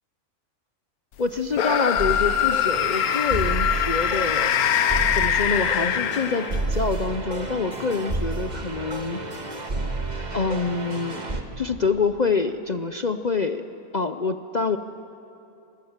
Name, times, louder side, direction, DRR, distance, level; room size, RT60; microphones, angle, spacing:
voice 1, 1.2-4.6 5.1-9.2 10.3-11.2 11.6-13.7 13.9-14.8, left 4 dB, 45° left, 9 dB, 0.5 m, -26 dB
sound 1, 1.5-6.7, left 10 dB, 75° left, 1.3 m, -23 dB
sound 2, 2.0-11.4, right 2 dB, 30° right, 1.8 m, -30 dB
29.5 x 25.0 x 7.4 m, 2.9 s
omnidirectional pair, 1.6 m